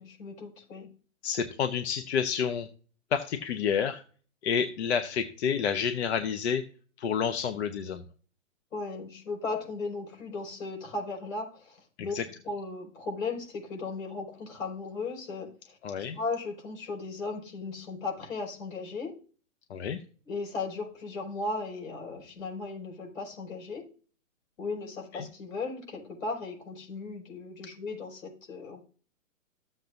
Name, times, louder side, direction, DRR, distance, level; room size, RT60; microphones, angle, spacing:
voice 1, 0.2-0.9 8.7-12.2 12.4-15.8 16.2-19.1 20.3-23.9 24.6-28.8, left 3 dB, 80° left, 1 dB, 5.4 m, -36 dB
voice 2, 1.2-2.7 3.1-4.0 4.4-6.6 7.0-8.0 12.1-12.2 15.8-16.2 19.7-20.0 25.1-25.2, left 7 dB, 55° left, 8 dB, 1.0 m, -29 dB
14.0 x 7.7 x 2.6 m, 0.40 s
hypercardioid pair, 145°, 40 cm